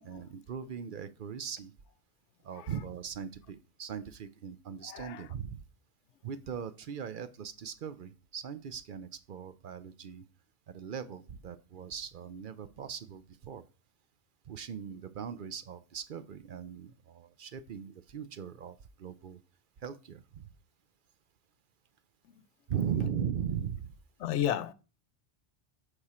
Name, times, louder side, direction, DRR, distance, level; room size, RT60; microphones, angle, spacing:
voice 1, 0.0-1.7 2.4-5.6 6.2-10.3 10.7-13.6 14.4-19.4 19.8-20.5 22.7-23.9, right 8 dB, 55° right, 0.7 m, -39 dB
voice 2, 4.8-5.3 22.2-22.4 24.2-24.7, left 11 dB, 85° left, 0.9 m, -34 dB
8.6 x 4.8 x 4.3 m
omnidirectional pair, 1.2 m